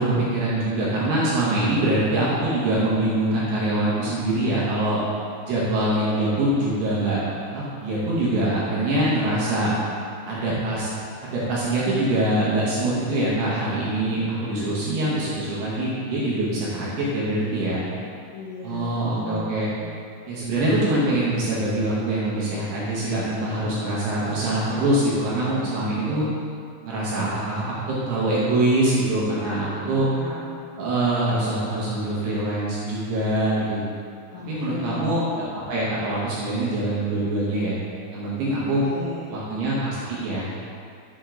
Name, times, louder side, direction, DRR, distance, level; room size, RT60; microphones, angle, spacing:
voice 1, 0.0-5.0 5.4-7.2 7.5-9.7 10.3-10.9 11.2-17.8 18.6-19.7 20.3-26.2 26.8-30.1 30.8-33.9 34.5-37.7 38.1-38.8 39.3-40.5, right 1 dB, 70° right, -8 dB, 2.8 m, -24 dB
voice 2, 18.3-19.9 29.3-29.6 29.9-30.6 34.3-35.0 38.9-39.3, left 3 dB, 85° left, -6 dB, 2.3 m, -37 dB
7.5 x 5.2 x 3.8 m, 2.4 s
omnidirectional pair, 5.7 m